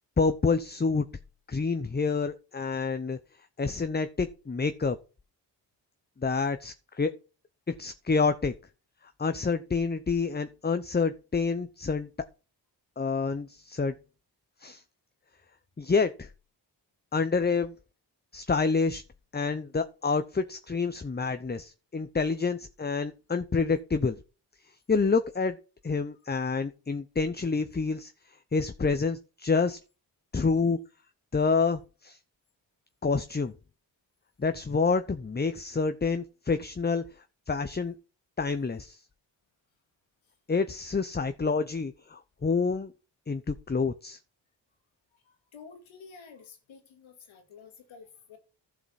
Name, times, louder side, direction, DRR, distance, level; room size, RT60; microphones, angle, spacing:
voice 1, 0.2-1.1 1.5-3.2 3.6-5.0 6.2-7.1 7.7-8.5 9.2-12.1 13.0-13.9 14.6-14.8 15.8-16.3 17.1-17.7 18.3-19.0 19.3-24.2 24.9-25.6 25.8-28.1 28.5-29.8 30.3-30.8 31.3-32.2 33.0-33.5 34.4-37.0 37.5-37.9 38.4-39.0 40.5-42.9 43.3-44.2, left 4 dB, 20° left, 0.8 m, -28 dB
voice 2, 45.2-48.4, left 5 dB, 85° left, 2.2 m, -50 dB
11.5 x 5.0 x 5.8 m
supercardioid pair, 40°, 46 cm